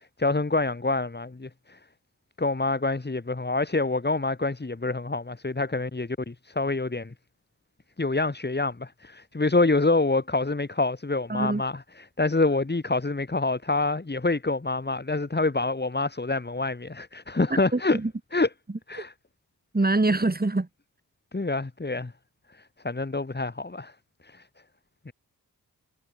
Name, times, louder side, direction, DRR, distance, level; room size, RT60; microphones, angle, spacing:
voice 1, 0.2-1.8 2.4-7.1 8.0-18.0 18.3-18.5 18.9-19.1 21.3-22.1 22.8-23.9 24.2-24.4 25.1-25.2, left 3 dB, 25° left, 3.7 m, -26 dB
voice 2, 11.3-11.6 17.7-18.1 19.7-20.7, right 2 dB, 25° right, 4.5 m, -24 dB
wide cardioid pair, 90°, 37 cm